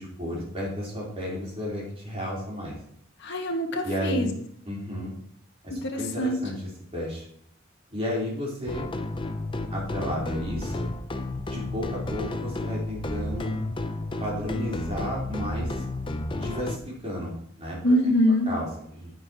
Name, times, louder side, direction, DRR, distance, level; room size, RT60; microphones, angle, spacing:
voice 1, 0.0-2.8 3.8-4.3 4.7-5.1 5.6-6.6 6.9-7.2 7.9-8.9 9.7-10.9 11.5-13.5 14.2-15.8 16.3-16.8 17.0-18.0 18.5-19.1, equal, 30° right, -4 dB, 3.8 m, -33 dB
voice 2, 3.2-4.3 5.8-6.4 17.8-18.5, equal, 60° left, 1 dB, 1.6 m, -24 dB
sound 1, 8.7-16.8, left 2 dB, 25° left, 0.6 m, -32 dB
9.4 x 9.1 x 3.0 m, 0.68 s
head